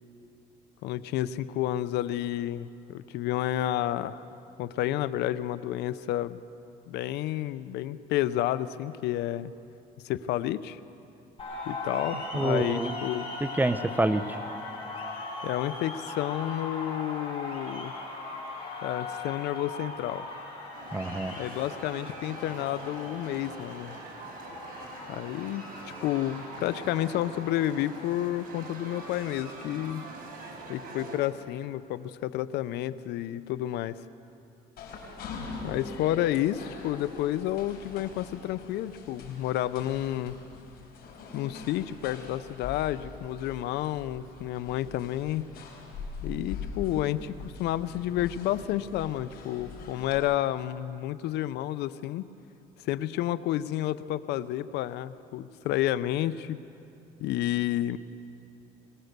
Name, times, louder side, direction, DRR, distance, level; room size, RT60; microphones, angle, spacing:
voice 1, 0.8-4.2 4.6-6.4 6.9-9.5 10.0-10.8 11.7-13.3 15.4-17.9 18.8-20.3 21.4-24.0 25.1-30.0 30.7-34.0 35.6-40.3 41.3-45.4 46.2-52.3 52.8-56.6 57.2-58.0, left 13 dB, 85° left, 15 dB, 0.6 m, -30 dB
sound 1, 11.4-29.1, left 2 dB, 35° left, 5.8 m, -40 dB
voice 2, 12.3-12.9 13.4-14.4 20.9-21.3, right 2 dB, 10° right, 12 dB, 0.7 m, -27 dB
sound 2, 20.7-31.2, right 3 dB, 60° right, 4.6 m, -44 dB
sound 3, 34.8-50.2, left 4 dB, 65° left, 4.6 m, -43 dB
22.0 x 19.5 x 6.7 m, 2.7 s
cardioid pair, 110°, 17 cm